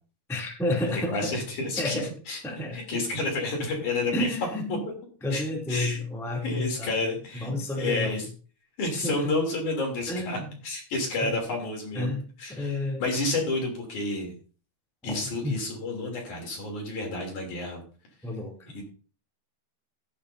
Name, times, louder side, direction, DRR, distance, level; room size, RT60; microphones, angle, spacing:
voice 1, 0.3-1.3 1.8-2.1 2.4-2.8 4.1-4.9 5.2-7.0 7.3-8.1 8.9-9.3 10.1-10.5 11.2-11.3 11.9-12.2 12.5-13.0 15.0-15.6 18.2-18.5, left 1 dB, ahead, -1 dB, 1.8 m, -30 dB
voice 2, 0.9-2.4 2.7-4.3 4.5-4.6 5.3-5.4 5.7-6.0 6.4-8.3 8.8-14.3 15.0-17.8 18.7-18.8, left 2 dB, 50° left, 1 dB, 4.3 m, -30 dB
15.5 x 11.0 x 2.7 m, 0.38 s
omnidirectional pair, 4.7 m